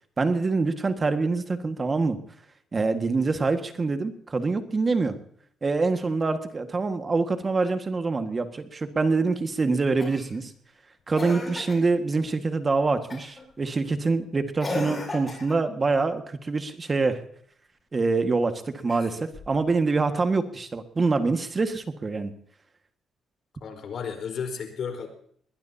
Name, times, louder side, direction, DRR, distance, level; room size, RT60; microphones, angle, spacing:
voice 1, 0.2-2.2 2.7-5.2 5.6-10.5 11.1-17.2 17.9-22.3, right 3 dB, 30° right, 8 dB, 1.7 m, -25 dB
Cough, 10.0-10.4 11.2-11.9 13.1-13.4 14.6-15.7 18.8-19.6 21.0-21.1, left 2 dB, 30° left, 7.7 m, -35 dB
voice 2, 23.6-25.1, left 6 dB, 60° left, 6 dB, 4.4 m, -33 dB
21.5 x 20.0 x 2.9 m, 0.62 s
cardioid pair, 90°, 0 cm